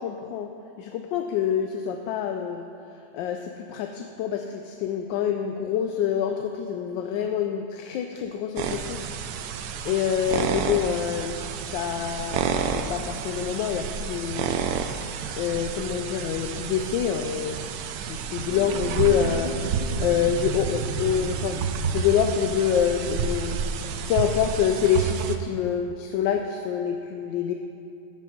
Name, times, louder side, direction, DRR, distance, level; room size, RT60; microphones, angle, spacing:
voice 1, 0.0-0.5 0.8-2.6 3.1-9.1 9.8-11.4 11.7-14.6 14.9-17.7 18.1-19.5 20.0-21.6 21.9-23.6 24.1-27.5, left 8 dB, 80° left, 5 dB, 1.2 m, -26 dB
sound 1, 8.6-25.4, right 6 dB, 70° right, 0.9 m, -30 dB
sound 2, 18.5-22.8, right 4 dB, 85° right, 1.5 m, -34 dB
14.5 x 5.4 x 5.2 m, 2.7 s
omnidirectional pair, 2.1 m